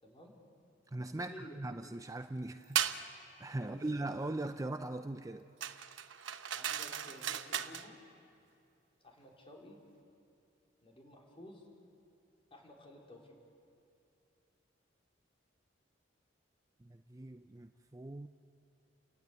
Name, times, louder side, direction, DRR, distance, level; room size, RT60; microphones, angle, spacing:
voice 1, 0.0-0.4 1.1-1.6 3.6-3.9 6.5-8.0 9.0-9.8 10.8-11.6 12.5-13.3, left 1 dB, 30° left, 4.4 m, -53 dB
voice 2, 0.9-5.5 16.8-18.3, right 2 dB, 15° right, 0.5 m, -40 dB
sound 1, 2.7-3.0 5.6-7.9, right 9 dB, 75° right, 1.0 m, -36 dB
30.0 x 16.0 x 9.5 m
head